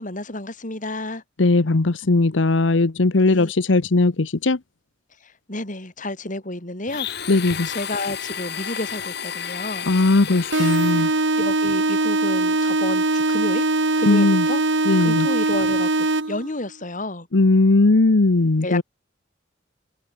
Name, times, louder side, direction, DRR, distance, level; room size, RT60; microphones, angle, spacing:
voice 1, 0.0-1.2 3.2-3.5 5.2-7.3 7.6-9.9 10.3-10.8 11.4-13.6 14.0-14.6 15.0-17.3 18.6-18.8, left 2 dB, 45° left, 4.9 m, -31 dB
voice 2, 1.4-4.6 7.3-7.7 9.9-11.1 14.0-14.5 14.9-15.3 17.3-18.8, left 2 dB, 85° left, 0.9 m, -18 dB
Domestic sounds home sounds, 6.9-11.3, left 8 dB, 60° left, 6.7 m, -32 dB
sound 1, 10.5-16.5, right 2 dB, 85° right, 2.4 m, -21 dB
open air
head